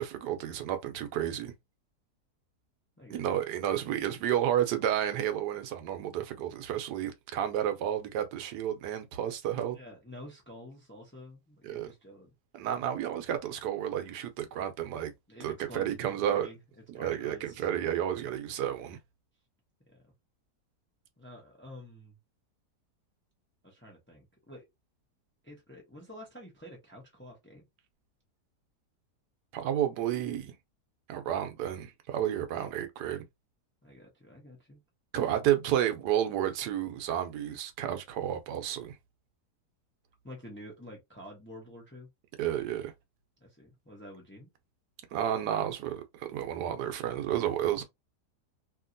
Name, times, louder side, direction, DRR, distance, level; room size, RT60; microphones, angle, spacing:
voice 1, 0.0-1.5 3.1-9.8 11.6-11.9 12.5-15.1 15.4-16.5 16.9-19.0 29.5-30.5 31.1-33.2 35.1-39.0 42.4-42.9 45.1-47.8, right 11 dB, 80° right, 1.2 m, -31 dB
voice 2, 3.0-3.8 9.7-12.3 15.3-16.6 16.9-17.7 19.9-20.0 21.2-22.2 23.6-24.7 25.4-27.7 33.8-34.8 40.2-42.1 43.4-44.5, equal, 10° left, 0.7 m, -49 dB
2.9 x 2.8 x 2.5 m
omnidirectional pair, 1.7 m